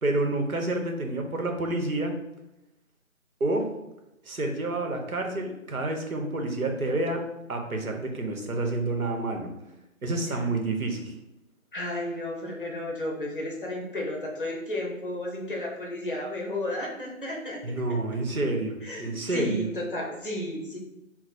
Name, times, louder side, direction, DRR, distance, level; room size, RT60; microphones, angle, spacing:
voice 1, 0.0-2.1 3.4-3.7 4.2-9.5 10.0-11.1 17.6-19.7, right 2 dB, 90° right, 3 dB, 0.9 m, -29 dB
voice 2, 11.7-17.6 18.8-20.8, left 1 dB, 40° left, -1 dB, 0.8 m, -33 dB
4.3 x 2.1 x 4.2 m, 0.94 s
figure-of-eight pair, 155°, 41 cm